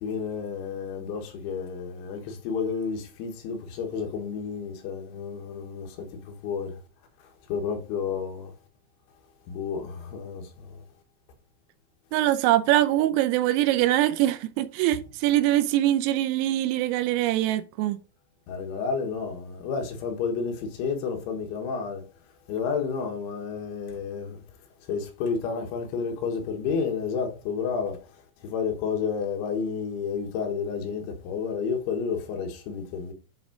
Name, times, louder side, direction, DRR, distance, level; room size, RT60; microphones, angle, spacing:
voice 1, 0.0-6.8 7.5-8.5 9.5-10.8 18.5-22.0 22.5-24.4 24.9-28.0 28.4-33.1, left 6 dB, 75° left, 3.6 m, -31 dB
voice 2, 12.1-18.0, right 14 dB, 90° right, 3.4 m, -23 dB
11.0 x 3.7 x 5.0 m
omnidirectional pair, 5.9 m